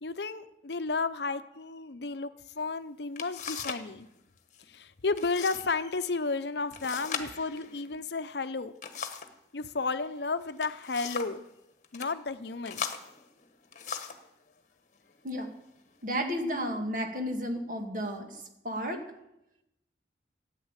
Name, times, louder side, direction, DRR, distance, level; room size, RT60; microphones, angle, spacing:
voice 1, 0.0-2.3 2.6-4.1 4.7-8.7 9.5-11.4 11.9-12.8, left 3 dB, 65° left, 11 dB, 0.8 m, -32 dB
sound 1, 2.7-2.8 3.2-3.9 4.2-4.7 5.2-5.7 6.0-6.1 6.7-9.4 10.4-11.4 11.8-12.1 12.6-14.3 15.1-15.2 15.8-16.3, left 6 dB, 40° left, 1.2 m, -39 dB
voice 2, 16.0-18.3 18.6-19.0, equal, 45° right, 4 dB, 2.1 m, -32 dB
14.0 x 9.3 x 8.2 m, 0.88 s
head